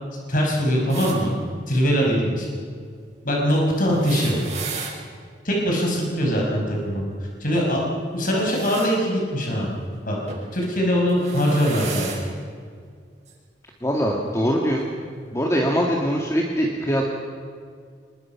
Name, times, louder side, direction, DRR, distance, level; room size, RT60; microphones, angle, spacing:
voice 1, 0.3-1.3 1.7-2.5 3.2-4.4 5.4-7.0 7.4-7.9 8.1-9.7 10.1-10.2 10.5-12.1, equal, 50° left, -1 dB, 5.5 m, -22 dB
sound 1, 0.9-1.2 3.8-4.9 8.2-8.9 10.3-10.5 11.1-12.2 13.3-13.4 14.6-14.7, right 5 dB, 40° right, 6.1 m, -34 dB
voice 2, 13.8-14.9 15.3-17.0, equal, 15° left, -1 dB, 2.0 m, -22 dB
26.0 x 21.0 x 5.9 m, 2.1 s
head